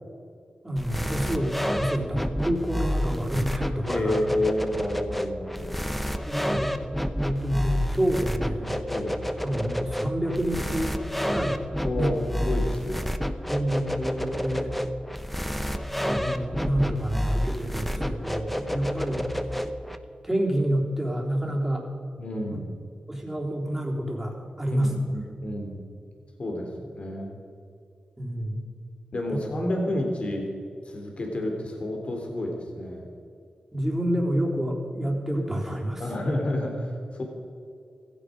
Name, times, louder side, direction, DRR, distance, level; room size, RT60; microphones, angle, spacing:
voice 1, 0.6-4.2 6.2-6.7 7.2-8.8 9.4-11.6 11.9-12.1 13.5-14.7 16.0-19.3 20.2-21.9 22.5-22.6 23.1-25.0 28.2-28.6 29.3-29.4 33.7-36.0, right 1 dB, 10° right, -1 dB, 3.7 m, -28 dB
sound 1, 0.8-20.0, equal, 5° left, 1.0 m, -29 dB
voice 2, 3.9-5.8 8.9-9.1 11.8-13.1 22.2-22.8 24.7-25.8 26.4-27.4 29.1-30.5 30.8-33.0 36.0-37.2, left 1 dB, 50° left, 2 dB, 3.3 m, -30 dB
16.0 x 15.5 x 5.1 m, 2.4 s
cardioid pair, 70°, 3 cm